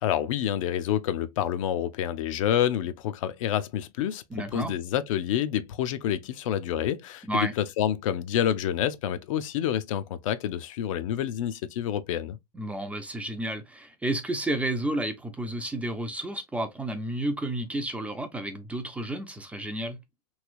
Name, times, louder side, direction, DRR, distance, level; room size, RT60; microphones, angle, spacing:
voice 1, 0.0-4.2 4.5-12.4, left 10 dB, 55° left, 0.5 m, -28 dB
voice 2, 4.3-4.7 7.2-7.5 12.5-20.0, right 1 dB, 5° right, 0.4 m, -31 dB
3.1 x 2.9 x 2.5 m
hypercardioid pair, 105°, 20 cm